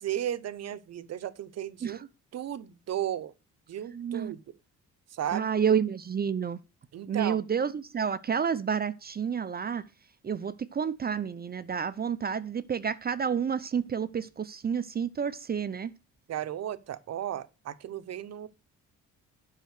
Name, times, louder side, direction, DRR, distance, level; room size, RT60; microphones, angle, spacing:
voice 1, 0.0-3.3 3.7-4.4 5.1-5.5 6.9-7.4 16.3-18.5, right 11 dB, 55° right, 0.9 m, -35 dB
voice 2, 3.9-4.3 5.3-6.6 7.1-9.8 10.2-15.9, right 7 dB, 30° right, 0.5 m, -30 dB
8.3 x 5.6 x 6.4 m
cardioid pair, 90°, 30 cm